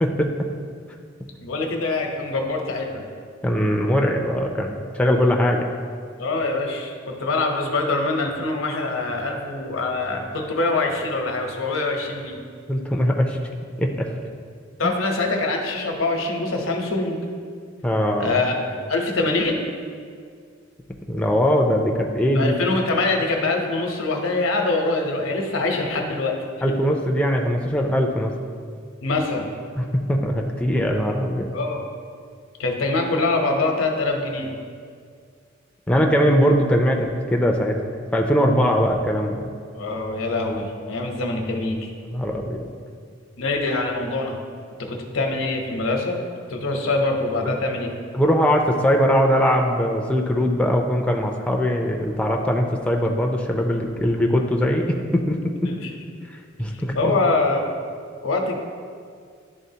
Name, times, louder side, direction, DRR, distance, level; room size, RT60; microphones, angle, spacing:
voice 1, 0.0-0.3 3.4-5.7 12.7-13.4 13.8-13.9 14.8-14.9 17.8-18.4 21.1-22.5 26.6-28.3 29.8-31.5 35.9-37.8 38.1-39.5 42.1-42.6 48.1-55.7 56.6-57.1, equal, 5° left, 1 dB, 0.4 m, -21 dB
voice 2, 1.4-3.1 6.2-12.4 14.8-17.2 18.2-18.5 18.9-19.6 22.3-26.4 29.0-29.5 31.5-31.9 32.6-34.5 39.7-41.9 43.4-44.4 44.8-46.2 46.5-47.9 55.7-55.9 56.9-57.7 58.2-58.7, left 3 dB, 80° left, 2 dB, 0.8 m, -24 dB
10.5 x 3.7 x 2.8 m, 2.1 s
head